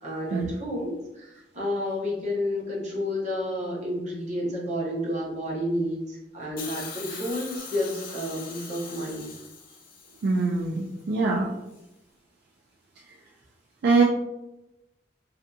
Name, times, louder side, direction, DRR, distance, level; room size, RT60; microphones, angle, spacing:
voice 1, 0.0-9.3, left 1 dB, 40° right, -4 dB, 0.8 m, -30 dB
Hiss, 6.6-10.7 11.7-11.8, left 5 dB, 50° left, 0.5 m, -41 dB
voice 2, 10.2-11.5 13.8-14.0, right 3 dB, 60° right, -2 dB, 0.3 m, -23 dB
2.7 x 2.5 x 2.2 m, 0.94 s
head